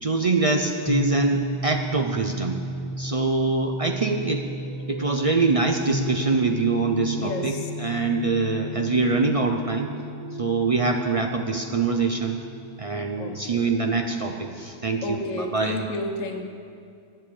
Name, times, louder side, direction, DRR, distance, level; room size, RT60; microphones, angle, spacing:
voice 1, 0.0-2.6 3.0-4.4 4.9-9.9 10.4-12.4 12.8-15.8, right 3 dB, 50° right, 4 dB, 0.4 m, -24 dB
sound 1, 0.9-14.5, left 2 dB, 40° left, 1.7 m, -35 dB
sound 2, 4.4-11.7, right 3 dB, 20° right, 2.1 m, -41 dB
voice 2, 7.2-7.7 13.2-13.7 15.0-16.4, left 2 dB, 75° left, 5 dB, 1.3 m, -31 dB
10.0 x 7.5 x 8.5 m, 2.4 s
omnidirectional pair, 1.4 m